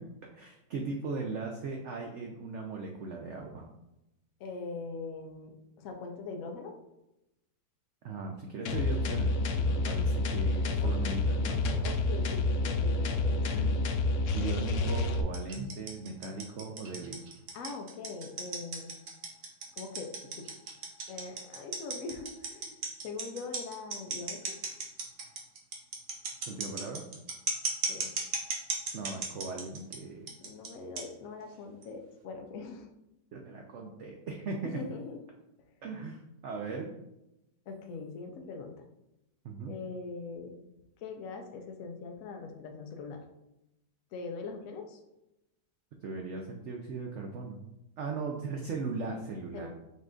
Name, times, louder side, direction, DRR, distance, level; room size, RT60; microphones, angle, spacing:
voice 1, 0.3-3.7 8.0-11.6 14.3-17.2 26.5-27.0 28.9-30.3 33.3-34.8 35.8-36.9 39.4-39.7 46.0-47.6 48.0-49.7, right 4 dB, 85° right, 1 dB, 0.6 m, -38 dB
voice 2, 4.4-6.8 10.8-10.9 11.8-13.8 17.5-18.9 19.8-20.5 21.1-22.8 23.0-24.6 27.9-28.1 30.4-32.9 34.6-35.2 37.7-38.7 39.7-40.5 41.0-43.2 44.1-45.0 49.5-49.7, left 4 dB, 60° left, 3 dB, 1.0 m, -42 dB
sound 1, 8.7-15.2, left 2 dB, 85° left, 0.6 m, -29 dB
sound 2, 15.3-30.0 30.3-30.7 31.0-31.1 31.8-31.9, right 4 dB, 55° right, 1.1 m, -35 dB
5.5 x 2.5 x 3.7 m, 0.89 s
omnidirectional pair, 1.9 m